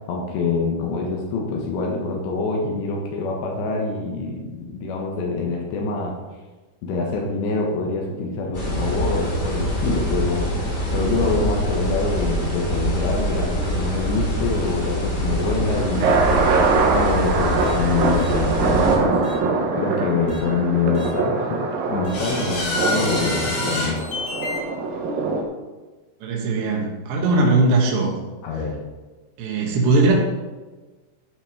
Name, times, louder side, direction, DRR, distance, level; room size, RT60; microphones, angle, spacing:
voice 1, 0.1-6.2 6.8-10.5 10.9-16.5 16.9-19.2 19.7-21.6 21.9-24.0 28.4-28.8, left 4 dB, 80° left, -1 dB, 3.5 m, -25 dB
sound 1, 8.5-19.0, equal, 25° left, 2.8 m, -25 dB
sound 2, 15.3-25.4, right 4 dB, 65° right, 2.7 m, -23 dB
sound 3, 17.6-17.7 18.2-18.3 19.2-19.3 20.3-20.4 20.9-21.1 22.0-24.6, left 2 dB, 50° left, 4.1 m, -28 dB
voice 2, 26.2-28.1 29.4-30.1, right 2 dB, 85° right, -1 dB, 3.7 m, -19 dB
12.5 x 6.1 x 5.0 m, 1.2 s
omnidirectional pair, 5.0 m